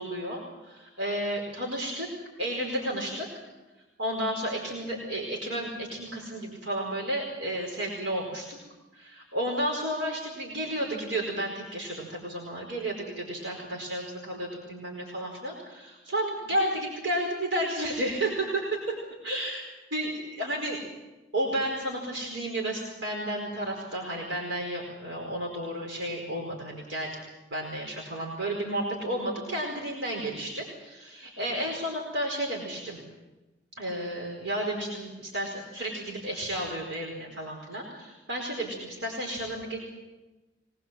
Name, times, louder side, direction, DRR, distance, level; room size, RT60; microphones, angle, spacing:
voice 1, 0.0-2.1 2.4-3.3 4.0-8.6 8.9-18.9 19.2-19.6 19.9-20.8 21.3-27.2 27.5-33.0 33.8-39.8, right 1 dB, 80° right, -1 dB, 4.8 m, -32 dB
23.5 x 20.5 x 7.7 m, 1.1 s
head